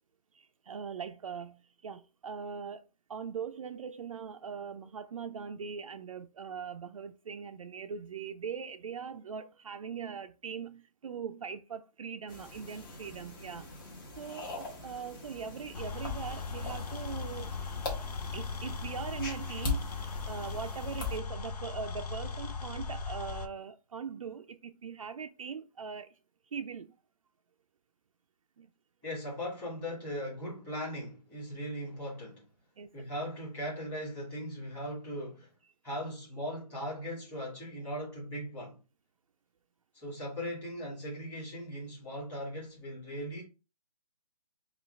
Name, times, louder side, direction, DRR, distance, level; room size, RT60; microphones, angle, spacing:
voice 1, 0.3-2.8 3.1-13.7 14.2-17.5 18.3-26.2 26.5-27.0 28.6-28.7 32.8-32.9, right 6 dB, 55° right, 0.4 m, -41 dB
sound 1, 12.3-21.2, left 3 dB, 35° left, 1.1 m, -41 dB
sound 2, 15.7-23.5, left 4 dB, 75° left, 0.7 m, -38 dB
voice 2, 29.0-32.4 32.9-35.5 35.8-38.8 39.9-43.4, equal, 10° left, 1.7 m, -39 dB
5.4 x 2.4 x 3.1 m
hypercardioid pair, 170°, 20 cm